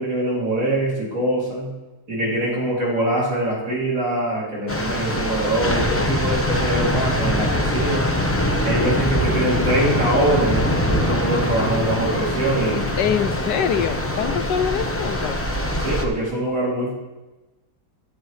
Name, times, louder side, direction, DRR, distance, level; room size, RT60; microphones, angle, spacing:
voice 1, 0.0-1.7 2.1-8.0 8.6-12.8 15.8-16.9, right 1 dB, 45° right, -5 dB, 3.4 m, -23 dB
sound 1, 4.7-16.1, left 1 dB, 15° left, 0.5 m, -23 dB
voice 2, 13.0-15.4, left 8 dB, 75° left, 10 dB, 1.2 m, -24 dB
17.5 x 10.0 x 3.2 m, 1.1 s
omnidirectional pair, 1.9 m